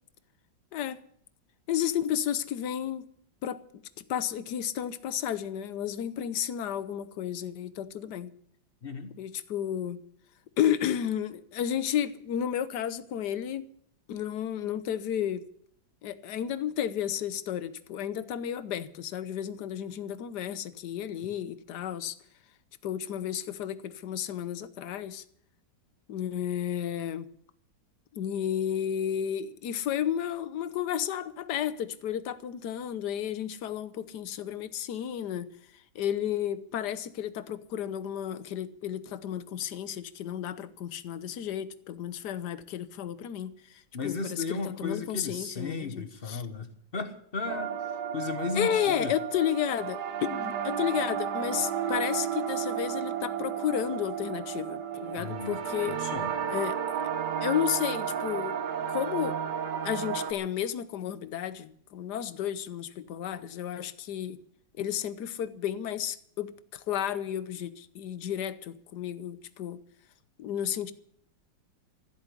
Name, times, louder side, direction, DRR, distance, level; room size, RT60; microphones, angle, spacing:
voice 1, 1.7-3.1 3.4-3.6 4.1-8.3 9.2-10.0 10.6-13.7 14.1-15.4 16.0-22.1 22.8-25.2 26.1-27.3 28.1-35.5 35.9-46.4 48.5-56.0 56.5-57.0 57.4-58.5 58.9-59.4 59.8-64.4 64.8-69.8 70.4-70.9, left 10 dB, 65° left, 1.3 m, -32 dB
voice 2, 8.8-9.1 43.9-47.7 48.1-49.1 55.2-55.6 55.9-56.3, left 4 dB, 35° left, 1.1 m, -35 dB
sound 1, 47.5-60.3, right 8 dB, 60° right, 1.8 m, -33 dB
14.5 x 8.1 x 9.8 m
omnidirectional pair, 2.1 m